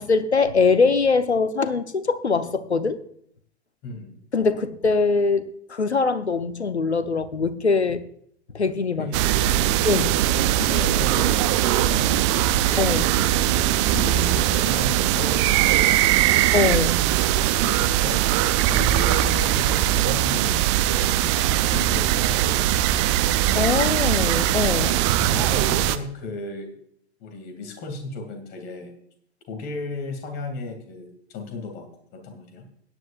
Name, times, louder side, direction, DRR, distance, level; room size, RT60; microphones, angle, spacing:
voice 1, 0.0-3.0 4.3-8.0 8.5-9.1 9.8-10.3 12.8-13.2 16.5-17.0 23.5-24.9, left 4 dB, 80° left, 13 dB, 0.9 m, -22 dB
voice 2, 3.8-4.1 9.0-9.9 10.6-11.4 11.7-12.6 13.4-16.4 17.6-18.3 18.7-21.1 21.6-23.0 24.7-25.0 25.3-26.8 27.2-28.9 29.5-32.7, left 3 dB, 30° left, 4 dB, 2.6 m, -35 dB
sound 1, 9.1-26.0, right 13 dB, 30° right, 0.5 m, -21 dB
17.0 x 9.9 x 2.5 m, 0.66 s
figure-of-eight pair, 100°, 33 cm